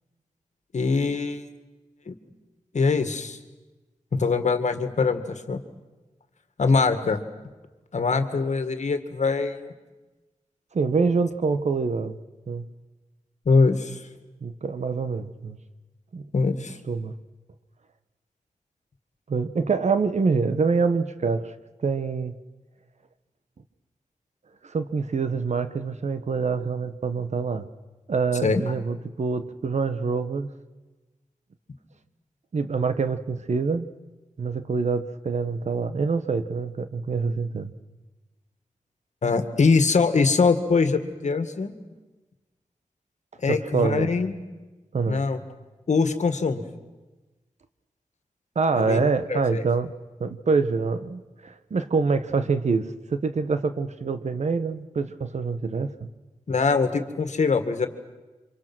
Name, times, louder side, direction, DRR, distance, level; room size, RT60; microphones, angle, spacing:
voice 1, 0.7-1.5 2.1-2.2 2.7-3.4 4.1-5.6 6.6-7.2 7.9-9.7 13.5-14.0 16.3-16.8 28.4-28.6 39.2-41.7 43.4-44.3 45.1-45.4 45.9-46.6 48.8-49.7 56.5-57.9, left 4 dB, 60° left, 8 dB, 2.0 m, -23 dB
voice 2, 10.7-12.2 12.5-12.6 14.4-15.6 16.1-16.3 16.9-17.1 19.3-21.5 21.8-22.3 24.6-27.6 28.1-30.5 32.5-33.9 34.4-37.7 43.5-44.1 44.9-45.2 48.5-49.9 50.2-56.1, right 4 dB, 60° right, 11 dB, 1.2 m, -25 dB
29.5 x 26.0 x 6.2 m, 1.2 s
wide cardioid pair, 100°, 13 cm